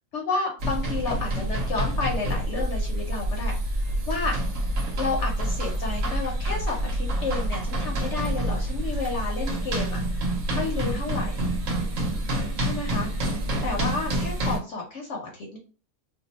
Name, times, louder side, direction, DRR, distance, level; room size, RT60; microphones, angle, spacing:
voice 1, 0.1-4.4 5.0-10.0 10.5-11.3 12.6-13.1 13.6-15.6, left 3 dB, 60° left, 0 dB, 0.9 m, -31 dB
sound 1, 0.6-14.6, right 1 dB, 65° right, 1.1 m, -27 dB
2.6 x 2.3 x 4.0 m, 0.38 s
omnidirectional pair, 1.5 m